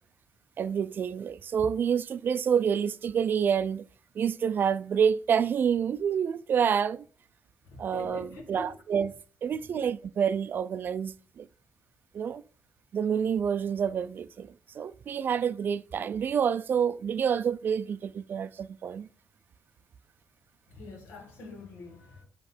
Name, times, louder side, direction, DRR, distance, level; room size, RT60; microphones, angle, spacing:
voice 1, 0.6-3.8 4.2-7.0 7.8-9.1 9.4-11.5 12.1-12.4 12.9-19.1, right 7 dB, 50° right, 0.4 m, -28 dB
voice 2, 7.7-8.8 9.7-9.8 20.7-22.2, left 2 dB, 85° left, 2.1 m, -44 dB
7.8 x 3.2 x 4.4 m
cardioid pair, 90°, 4 cm